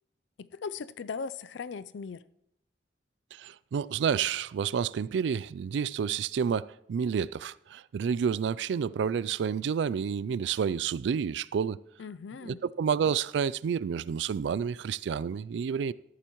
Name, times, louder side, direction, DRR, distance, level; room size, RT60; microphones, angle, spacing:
voice 1, 0.4-2.2 12.0-12.6, left 5 dB, 85° left, 0.4 m, -38 dB
voice 2, 3.3-11.8 12.4-15.9, right 7 dB, 80° right, 0.3 m, -29 dB
13.5 x 11.5 x 3.0 m
head